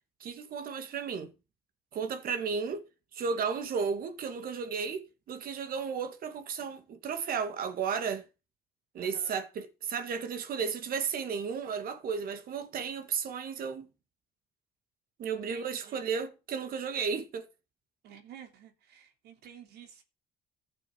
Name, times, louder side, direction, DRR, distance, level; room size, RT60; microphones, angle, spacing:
voice 1, 0.2-1.3 1.9-2.8 3.1-8.2 8.9-13.9 15.2-17.4, right 6 dB, 60° right, 2.3 m, -34 dB
voice 2, 9.0-9.3 15.3-16.0 18.0-20.0, right 9 dB, 75° right, 3.2 m, -51 dB
15.0 x 6.8 x 6.2 m
cardioid pair, 110°, 17 cm